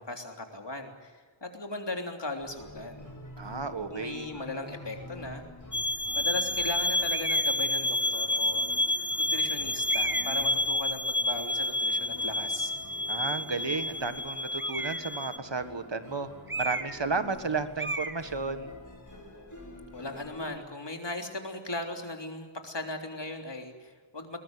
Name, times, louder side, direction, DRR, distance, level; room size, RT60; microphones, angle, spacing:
voice 1, 0.0-3.1 3.9-5.5 6.1-12.7 19.9-24.4, left 2 dB, 60° left, 3 dB, 3.4 m, -38 dB
sound 1, 2.4-20.5, left 1 dB, 40° left, 7.0 m, -48 dB
voice 2, 3.4-4.3 13.1-16.3 16.6-18.7, right 4 dB, 60° right, 10 dB, 1.7 m, -33 dB
sound 2, 5.7-15.4, left 1 dB, 25° left, 0.8 m, -29 dB
sound 3, 7.1-7.5 8.3-8.4 9.9-10.4 14.6-15.2 16.5-17.1 17.3-17.5 17.8-18.2, right 2 dB, 25° right, 1.4 m, -34 dB
21.5 x 20.5 x 7.9 m, 1.4 s
wide cardioid pair, 50°, 48 cm